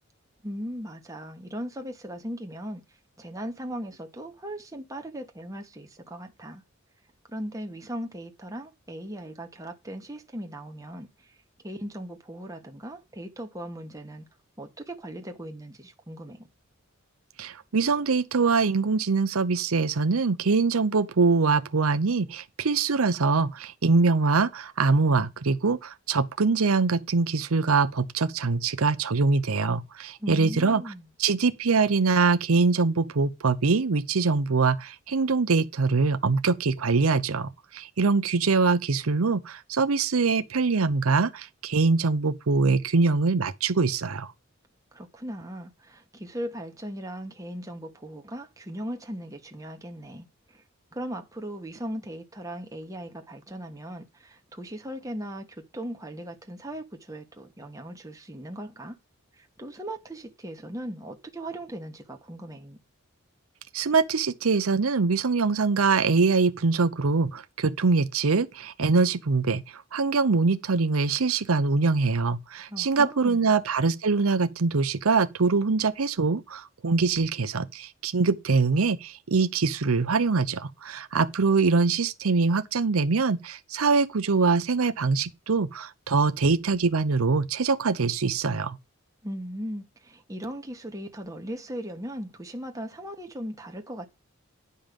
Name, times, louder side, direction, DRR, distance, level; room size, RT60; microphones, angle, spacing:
voice 1, 0.4-2.8 3.2-6.6 7.3-11.4 11.6-14.2 14.6-16.5 30.2-31.1 44.9-50.6 50.9-59.0 59.4-62.8 72.7-73.5 89.2-94.1, equal, 15° right, 1.5 m, -38 dB
voice 2, 17.4-30.8 31.2-44.3 63.7-88.8, right 4 dB, 85° right, 0.7 m, -23 dB
10.5 x 5.5 x 5.2 m
head